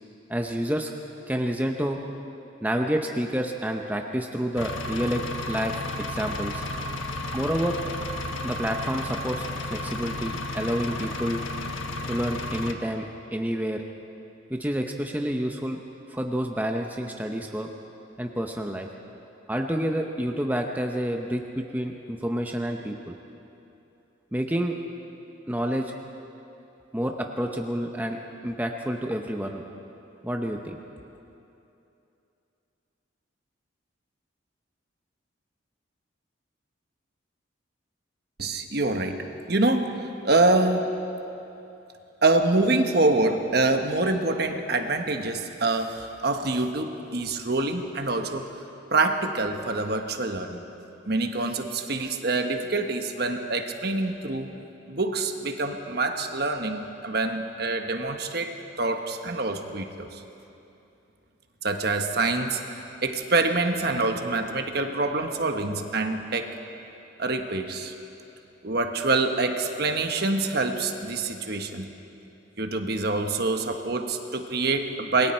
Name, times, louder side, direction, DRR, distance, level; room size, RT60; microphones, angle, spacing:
voice 1, 0.3-0.9 1.3-2.0 2.6-5.2 5.5-6.6 7.3-7.8 8.4-11.4 12.1-13.8 14.5-15.8 16.1-17.7 18.2-18.9 19.5-23.2 24.3-24.8 25.5-25.9 26.9-28.2 28.4-29.6 30.2-30.8, equal, 10° right, 2 dB, 0.8 m, -29 dB
Engine, 4.6-12.7, left 2 dB, 75° left, 1.4 m, -33 dB
voice 2, 38.4-41.0 42.2-48.5 48.9-50.7 51.1-54.5 54.9-60.2 61.6-62.6 63.0-66.5 67.2-67.9 68.6-71.9 72.6-75.3, right 2 dB, 50° right, 5 dB, 1.2 m, -26 dB
27.5 x 21.5 x 4.4 m, 2.8 s
head